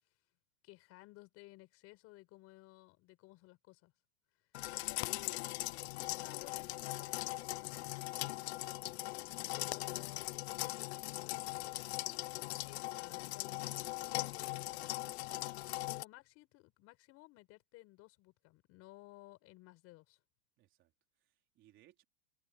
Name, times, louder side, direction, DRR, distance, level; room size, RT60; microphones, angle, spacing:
voice 1, 0.6-3.9 4.7-7.7 8.8-11.8 12.6-20.2, left 21 dB, 35° left, 6.4 m, -57 dB
sound 1, 4.5-16.0, left 19 dB, 55° left, 0.8 m, -40 dB
voice 2, 8.0-8.4 20.6-22.0, right 14 dB, 30° right, 4.0 m, -68 dB
supercardioid pair, 155°, 40 cm